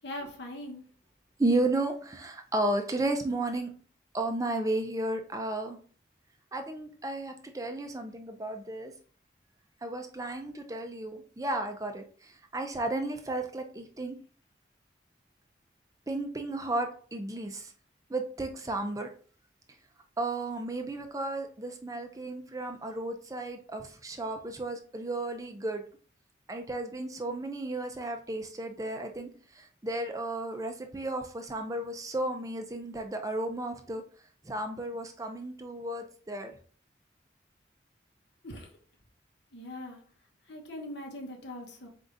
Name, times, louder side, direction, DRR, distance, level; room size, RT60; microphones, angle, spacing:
voice 1, 0.0-0.8 38.4-38.7 39.5-40.0 40.5-41.9, left 1 dB, 75° left, 1.0 m, -41 dB
voice 2, 1.4-3.7 4.1-5.8 6.5-8.9 9.8-14.2 16.1-17.7 18.1-19.1 20.2-25.8 26.5-34.0 34.4-36.6, right 2 dB, 20° right, 0.5 m, -33 dB
4.4 x 3.9 x 2.5 m
head